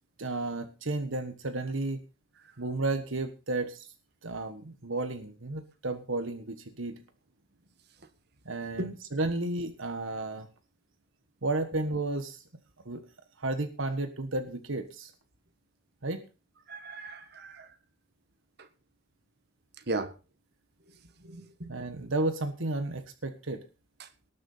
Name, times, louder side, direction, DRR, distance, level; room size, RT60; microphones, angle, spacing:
voice 1, 0.2-2.0 2.6-3.9 4.2-7.0 8.4-10.5 11.4-12.4 12.8-13.0 13.4-15.1 16.0-16.2 21.7-23.6, right 2 dB, 65° right, 1.4 m, -32 dB
voice 2, 16.7-17.7 18.6-18.7 19.9-20.1 21.2-21.8 24.0-24.1, right 2 dB, 50° right, 1.6 m, -37 dB
19.5 x 6.8 x 5.6 m
head